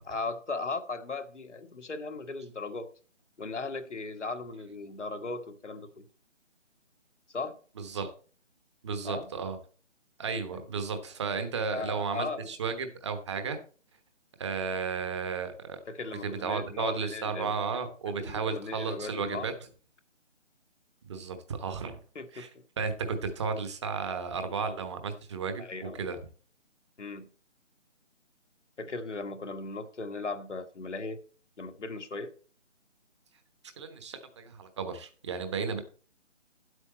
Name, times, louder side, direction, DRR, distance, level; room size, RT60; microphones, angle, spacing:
voice 1, 0.0-2.9 3.4-6.0 7.3-7.6 9.0-9.3 10.5-10.6 11.7-12.5 15.9-17.6 18.2-19.5 22.1-22.4 25.6-26.0 27.0-27.3 28.8-31.2 31.6-32.3, left 3 dB, 70° left, 1.4 m, -37 dB
voice 2, 7.8-8.1 8.8-9.6 10.2-13.6 14.4-15.8 16.2-19.5 21.1-22.0 22.3-22.5 22.8-26.2 33.8-35.8, right 5 dB, 25° right, 1.1 m, -33 dB
10.0 x 8.1 x 4.2 m
figure-of-eight pair, 155°, 37 cm